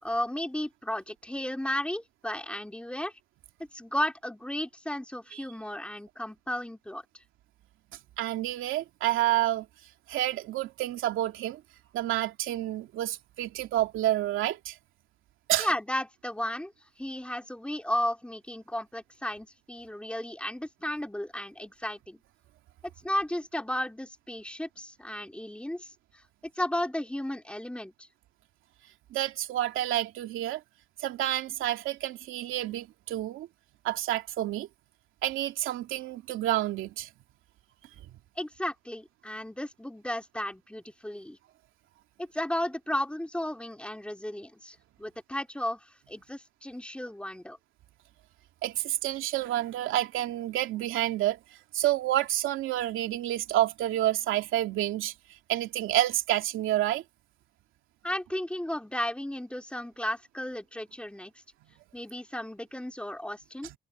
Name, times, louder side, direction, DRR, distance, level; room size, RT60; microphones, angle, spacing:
voice 1, 0.0-3.1 3.7-7.0 15.6-16.7 17.0-22.2 23.0-25.9 26.6-28.1 38.4-41.4 42.2-47.6 58.0-61.3 61.9-63.7, left 1 dB, 5° left, 3.6 m, -34 dB
voice 2, 8.2-9.7 10.1-11.6 11.9-14.8 15.5-15.7 29.1-30.6 31.0-33.5 33.8-34.7 35.2-37.1 48.6-51.4 51.7-55.1 55.5-57.0, right 13 dB, 90° right, 2.7 m, -29 dB
cardioid pair, 90°, 20 cm